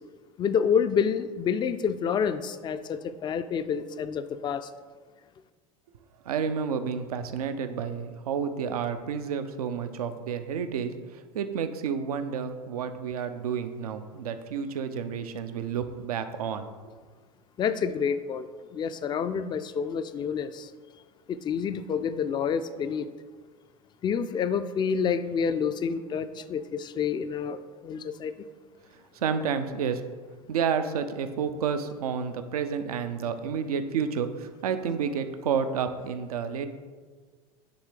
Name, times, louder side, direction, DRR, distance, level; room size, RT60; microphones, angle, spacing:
voice 1, 0.4-4.7 17.6-20.7 21.3-23.1 24.0-27.6 27.8-28.3, left 7 dB, 25° left, 12 dB, 0.3 m, -28 dB
voice 2, 6.3-10.9 11.3-16.7 29.2-30.0 30.5-36.7, right 7 dB, 75° right, 9 dB, 0.5 m, -30 dB
9.6 x 3.3 x 3.2 m, 1.5 s
hypercardioid pair, 80°, 19 cm